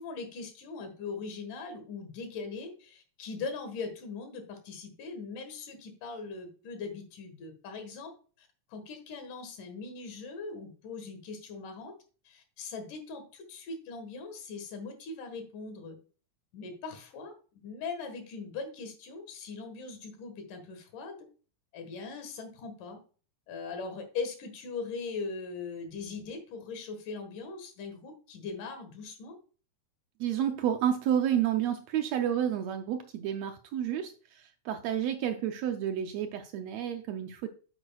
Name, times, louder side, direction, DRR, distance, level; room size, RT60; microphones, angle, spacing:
voice 1, 0.0-8.1 8.4-11.9 12.3-16.0 16.5-17.3 17.6-21.3 21.7-23.0 23.5-29.4, left 4 dB, 85° left, 7 dB, 3.1 m, -40 dB
voice 2, 30.2-37.5, right 9 dB, 80° right, 6 dB, 1.5 m, -30 dB
8.8 x 7.8 x 2.3 m, 0.38 s
omnidirectional pair, 3.6 m